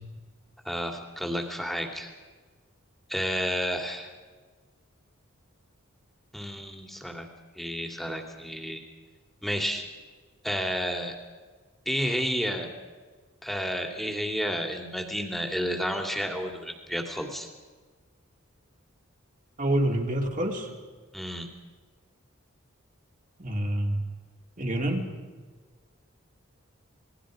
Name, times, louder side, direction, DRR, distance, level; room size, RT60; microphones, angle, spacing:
voice 1, 0.6-2.1 3.1-4.1 6.3-7.3 7.5-8.8 9.4-9.8 10.4-11.1 11.9-12.7 13.4-17.5 21.1-21.5, equal, ahead, 3 dB, 2.8 m, -31 dB
voice 2, 19.6-20.7 23.4-24.0 24.6-25.1, right 1 dB, 35° right, 2 dB, 3.2 m, -27 dB
28.0 x 22.0 x 5.1 m, 1.5 s
head